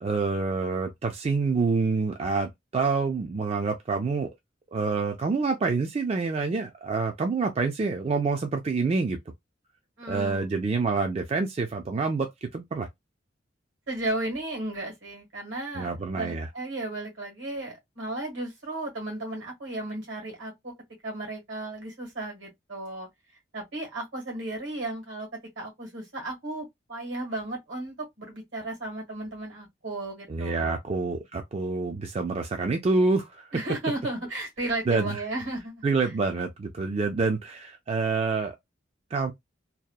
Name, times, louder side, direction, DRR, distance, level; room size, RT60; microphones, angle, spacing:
voice 1, 0.0-4.3 4.7-9.2 10.1-12.9 15.8-16.5 30.3-33.5 34.9-35.2 35.8-38.6 39.1-39.3, right 4 dB, 30° right, 0.3 m, -27 dB
voice 2, 10.0-10.5 13.9-20.7 21.0-23.1 23.5-30.8 33.5-35.8, right 2 dB, 80° right, 1.4 m, -34 dB
2.8 x 2.1 x 2.2 m
head